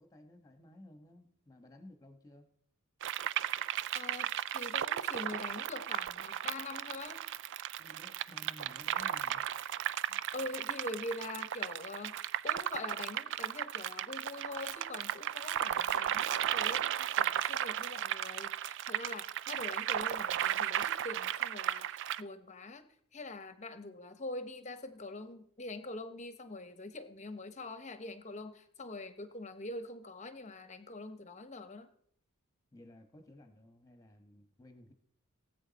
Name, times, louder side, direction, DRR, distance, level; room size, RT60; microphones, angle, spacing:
voice 1, 0.0-2.4 7.8-9.5 10.1-10.2 32.7-34.9, left 1 dB, 15° left, 6 dB, 1.3 m, -55 dB
sound 1, 3.0-22.2, right 11 dB, 55° right, 0.4 m, -35 dB
voice 2, 3.9-7.2 10.1-22.9 23.1-31.9, left 2 dB, 30° left, 10 dB, 1.0 m, -44 dB
18.5 x 8.3 x 4.1 m, 0.69 s
head